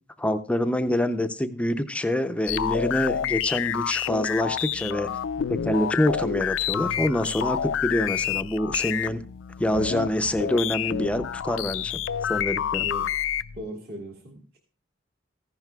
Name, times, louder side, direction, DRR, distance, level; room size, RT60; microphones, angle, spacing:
voice 1, 0.2-5.1 5.5-9.2 9.6-12.0 12.3-12.9, left 1 dB, 5° left, 8 dB, 0.4 m, -26 dB
sound 1, 2.5-13.6, left 9 dB, 75° left, 0.4 m, -29 dB
voice 2, 13.5-14.6, equal, 55° right, -1 dB, 1.8 m, -38 dB
14.5 x 10.5 x 2.2 m, 0.38 s
head